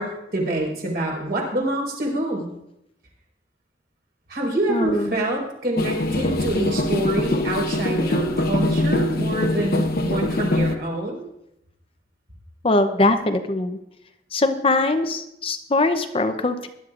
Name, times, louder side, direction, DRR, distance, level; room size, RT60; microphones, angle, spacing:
voice 1, 0.0-2.5 4.3-11.2, right 1 dB, 60° right, -2 dB, 4.5 m, -26 dB
voice 2, 4.7-5.2 12.6-13.8 14.3-16.7, left 2 dB, 30° left, 7 dB, 0.7 m, -21 dB
sound 1, 5.8-10.8, left 1 dB, 60° left, 1.0 m, -23 dB
20.0 x 11.5 x 2.5 m, 0.81 s
head